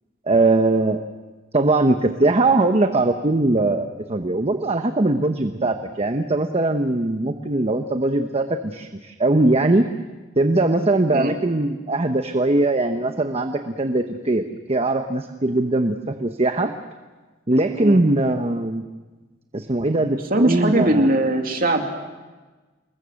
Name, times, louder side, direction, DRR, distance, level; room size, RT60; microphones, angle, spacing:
voice 1, 0.3-1.0 1.5-9.9 10.4-14.4 14.7-16.7 17.5-18.8 19.5-21.1, right 2 dB, 30° right, 7 dB, 1.0 m, -20 dB
voice 2, 20.3-21.8, right 1 dB, 50° right, 4 dB, 2.6 m, -20 dB
27.5 x 21.5 x 6.5 m, 1.3 s
head